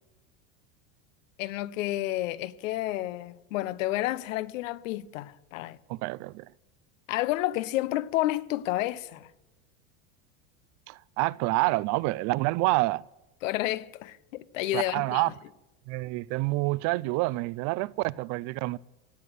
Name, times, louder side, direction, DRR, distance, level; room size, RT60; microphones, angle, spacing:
voice 1, 1.4-5.8 7.1-9.3 13.4-15.3, left 15 dB, 85° left, 0.9 m, -30 dB
voice 2, 5.9-6.5 10.9-13.0 14.7-15.3 15.9-18.8, right 21 dB, 50° right, 0.5 m, -28 dB
17.0 x 8.2 x 9.3 m
supercardioid pair, 135°, 39 cm